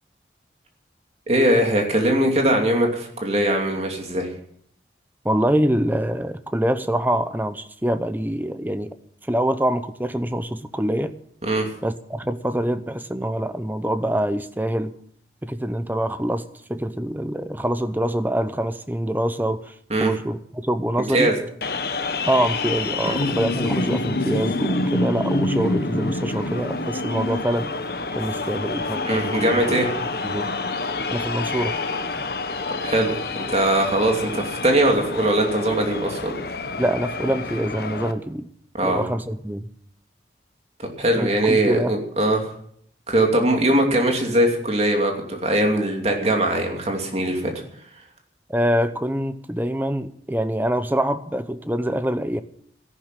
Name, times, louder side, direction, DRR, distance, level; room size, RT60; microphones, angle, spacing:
voice 1, 1.3-4.3 11.4-11.7 19.9-20.1 21.1-21.4 23.0-23.2 29.0-29.9 32.8-33.1 33.5-36.3 38.7-39.0 40.8-42.5 43.1-47.5, right 1 dB, 35° right, 2 dB, 2.8 m, -21 dB
voice 2, 5.2-8.9 9.3-11.1 11.8-14.9 15.4-16.4 16.7-21.3 22.3-27.7 28.1-29.9 30.2-30.5 31.1-31.8 36.8-38.5 38.8-39.7 41.2-41.9 48.5-52.4, right 1 dB, 10° right, 12 dB, 0.7 m, -25 dB
sound 1, 21.6-38.1, left 2 dB, 60° left, 1.2 m, -27 dB
14.0 x 11.5 x 7.5 m, 0.66 s
head